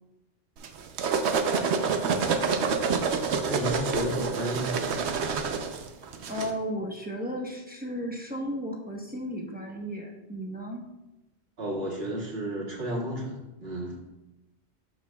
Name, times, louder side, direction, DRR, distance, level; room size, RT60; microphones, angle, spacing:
sound 1, 0.6-6.5, right 5 dB, 80° right, 1.0 m, -27 dB
voice 1, 3.5-4.8 11.6-14.0, equal, 65° right, -4 dB, 2.2 m, -32 dB
voice 2, 6.3-10.8, equal, 10° right, -1 dB, 0.9 m, -34 dB
13.0 x 5.3 x 2.3 m, 0.98 s
omnidirectional pair, 1.1 m